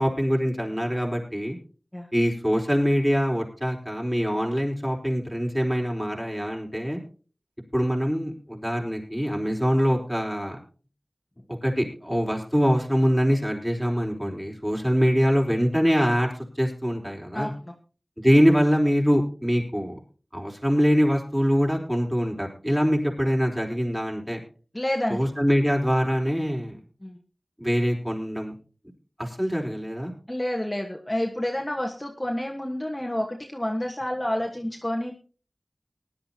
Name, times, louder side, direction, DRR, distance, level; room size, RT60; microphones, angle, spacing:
voice 1, 0.0-1.6 2.1-7.0 7.7-10.6 11.6-17.5 18.2-20.0 20.3-24.4 25.1-26.8 27.6-28.5 29.2-30.1, equal, 10° right, -1 dB, 4.2 m, -24 dB
voice 2, 17.3-17.7 24.7-25.2 27.0-27.2 30.3-35.2, left 1 dB, 20° left, 1 dB, 1.5 m, -29 dB
19.5 x 11.0 x 2.9 m, 0.37 s
wide cardioid pair, 45°, 0 cm